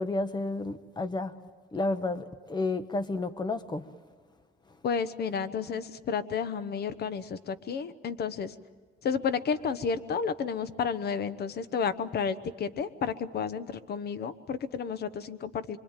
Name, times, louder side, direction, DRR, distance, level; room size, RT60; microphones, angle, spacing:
voice 1, 0.0-1.3 1.7-3.8, left 2 dB, 20° left, 11 dB, 1.1 m, -31 dB
voice 2, 4.8-8.5 9.0-15.8, left 6 dB, 55° left, 13 dB, 1.1 m, -31 dB
25.0 x 24.5 x 9.1 m, 1.5 s
cardioid pair, 155°, 20 cm